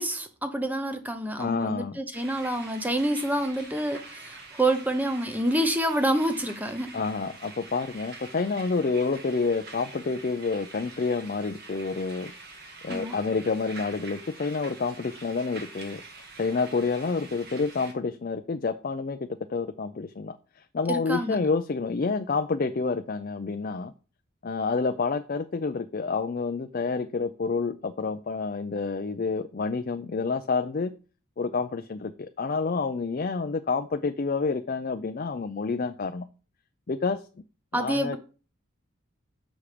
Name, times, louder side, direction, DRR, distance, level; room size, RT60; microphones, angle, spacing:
voice 1, 0.0-7.0 12.9-13.2 20.9-21.4 37.7-38.2, right 1 dB, 10° right, 0.7 m, -27 dB
voice 2, 1.4-2.0 6.9-12.3 12.8-16.0 16.4-19.2 19.5-20.4 20.7-23.9 24.4-30.9 31.4-36.3 36.9-37.2 37.7-38.2, left 4 dB, 40° left, 0.4 m, -28 dB
sound 1, 2.1-17.9, right 3 dB, 45° right, 1.6 m, -45 dB
7.0 x 6.3 x 5.0 m
head